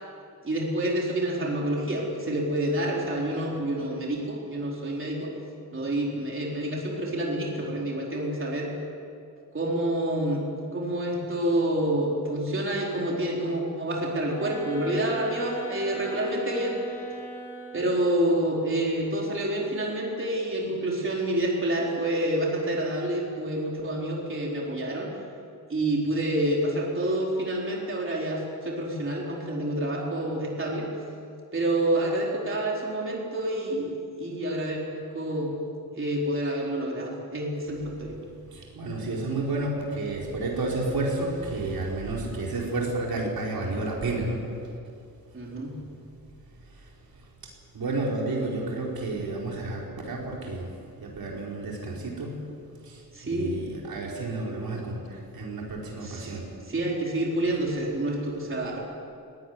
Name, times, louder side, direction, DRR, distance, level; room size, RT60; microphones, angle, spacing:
voice 1, 0.4-5.3 5.7-8.7 9.5-10.4 10.7-16.7 17.7-25.1 25.7-30.9 31.5-35.6 36.0-38.2 45.3-45.8 53.1-53.5 56.0-56.4 56.7-58.8, right 1 dB, 35° right, -2 dB, 4.1 m, -28 dB
sound 1, 14.2-18.1, right 2 dB, 5° left, 6.1 m, -39 dB
voice 2, 38.5-44.5 46.7-46.9 47.1-50.7 51.0-52.5 52.8-56.5, right 2 dB, 75° right, -2 dB, 4.8 m, -31 dB
20.5 x 18.5 x 9.6 m, 2.5 s
wide cardioid pair, 130°, 36 cm